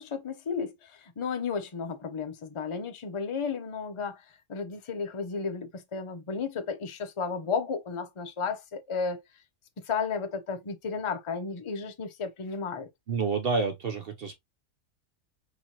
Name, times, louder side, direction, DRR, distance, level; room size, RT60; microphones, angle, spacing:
voice 1, 0.0-4.2 4.5-9.2 9.8-12.9, left 5 dB, 35° left, 0.5 m, -33 dB
voice 2, 13.1-14.3, right 4 dB, 55° right, 0.7 m, -28 dB
4.4 x 3.3 x 2.8 m
omnidirectional pair, 1.5 m